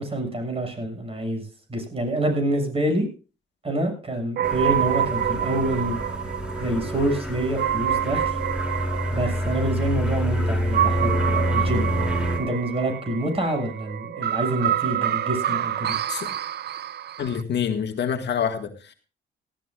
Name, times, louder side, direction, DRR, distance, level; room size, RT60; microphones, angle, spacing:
voice 1, 0.0-3.1 3.6-6.0 6.6-8.4 9.1-15.9, right 1 dB, 30° right, 6 dB, 6.7 m, -27 dB
sound 1, 4.4-12.4, equal, 5° right, 4.4 m, -27 dB
sound 2, 4.4-17.4, right 11 dB, 55° right, 0.6 m, -28 dB
voice 2, 17.2-18.9, left 8 dB, 60° left, 6 dB, 1.8 m, -27 dB
18.0 x 14.0 x 2.4 m, 0.34 s
cardioid pair, 90°, 20 cm